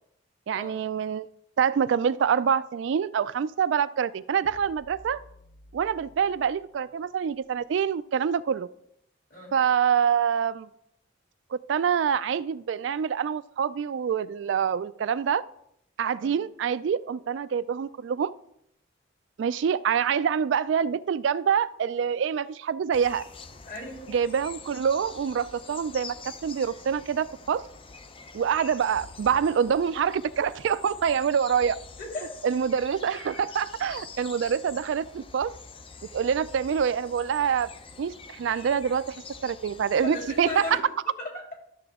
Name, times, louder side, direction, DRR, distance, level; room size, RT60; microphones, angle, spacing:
voice 1, 0.5-1.3 1.6-5.2 5.7-8.7 9.5-10.7 11.5-15.4 16.0-18.3 19.4-23.2 24.1-27.6 28.3-31.8 32.4-35.6 36.1-37.7 38.0-40.8, right 7 dB, 65° right, 15 dB, 0.3 m, -26 dB
sound 1, 4.4-7.8, left 1 dB, 85° left, 0.9 m, -54 dB
sound 2, 22.9-40.8, left 4 dB, 30° left, 0.5 m, -46 dB
voice 2, 23.6-24.1 32.0-32.4 40.0-40.8 41.2-41.5, left 2 dB, 45° left, -1 dB, 3.1 m, -36 dB
12.5 x 6.8 x 3.6 m, 0.75 s
head